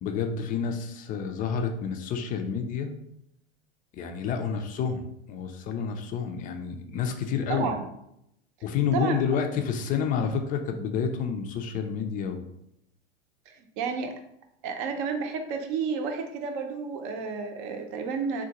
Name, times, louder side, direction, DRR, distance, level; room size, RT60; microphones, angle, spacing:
voice 1, 0.0-3.0 3.9-7.7 8.6-12.4, left 6 dB, 25° left, 5 dB, 0.4 m, -29 dB
voice 2, 7.5-7.9 8.9-9.2 13.5-14.1 14.6-18.4, right 5 dB, 50° right, 5 dB, 0.7 m, -31 dB
3.8 x 2.2 x 2.8 m, 0.78 s
hypercardioid pair, 100°, 32 cm